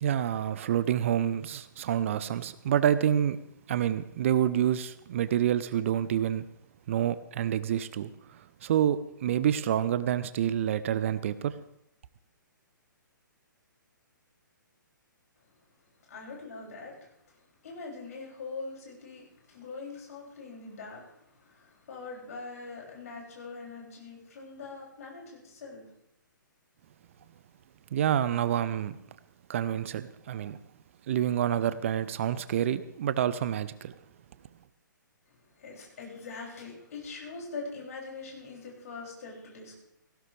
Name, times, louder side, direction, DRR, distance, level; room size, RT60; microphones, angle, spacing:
voice 1, 0.0-3.4 3.7-6.5 6.9-11.5 27.9-29.0 29.5-30.6 31.1-33.9, right 10 dB, 40° right, 15 dB, 0.6 m, -28 dB
voice 2, 16.1-17.1 17.6-25.8 35.5-39.8, left 4 dB, 50° left, -2 dB, 6.6 m, -43 dB
18.5 x 16.0 x 3.4 m, 0.75 s
figure-of-eight pair, 125°, 11 cm